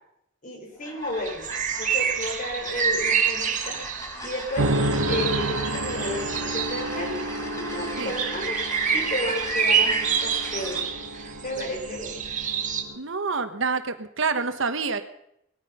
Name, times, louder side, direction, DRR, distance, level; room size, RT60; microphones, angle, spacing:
voice 1, 0.4-1.5 1.8-3.8 4.2-10.9 11.4-12.2, left 1 dB, 40° left, 2 dB, 4.3 m, -33 dB
sound 1, 0.7-10.9, equal, 15° left, 4.7 m, -39 dB
sound 2, 1.2-12.8, right 7 dB, 40° right, 1.7 m, -28 dB
sound 3, 4.6-13.0, right 1 dB, 90° right, 1.2 m, -31 dB
voice 2, 13.0-15.0, right 4 dB, 70° right, 10 dB, 1.2 m, -27 dB
19.5 x 13.0 x 5.6 m, 0.77 s
head